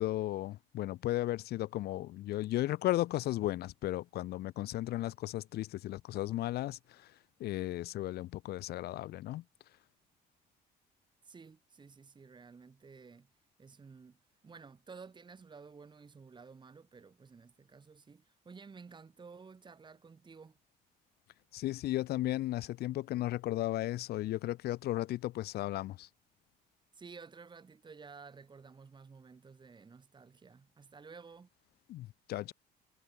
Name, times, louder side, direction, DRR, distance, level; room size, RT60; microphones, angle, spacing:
voice 1, 0.0-7.1 7.4-9.4 21.5-26.1 31.9-32.5, left 15 dB, 70° left, 1.0 m, -35 dB
voice 2, 11.2-13.3 13.6-14.2 14.4-20.6 26.9-31.5, right 5 dB, 25° right, 3.7 m, -53 dB
cardioid pair, 110°, 17 cm